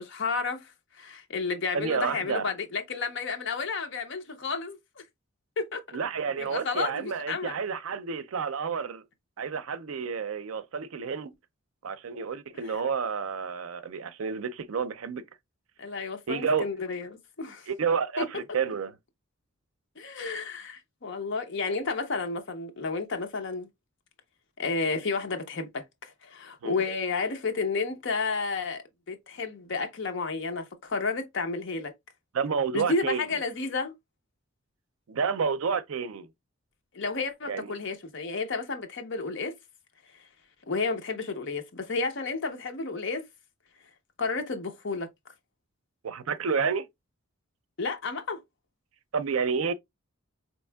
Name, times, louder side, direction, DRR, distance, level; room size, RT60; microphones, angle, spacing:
voice 1, 0.0-5.0 5.6-5.8 6.4-7.5 12.6-12.7 15.8-17.1 17.4-17.7 18.2-18.3 20.0-23.7 24.6-31.9 32.7-33.9 36.9-39.5 40.7-43.3 44.2-45.1 47.8-48.4, left 4 dB, 60° left, 0.7 m, -31 dB
voice 2, 1.7-2.5 5.9-9.0 9.4-11.3 11.8-15.2 16.3-16.7 17.7-18.9 26.6-26.8 32.3-33.4 35.1-36.3 37.5-37.7 46.0-46.9 49.1-49.7, right 6 dB, 80° right, 0.5 m, -30 dB
4.4 x 3.0 x 2.2 m
head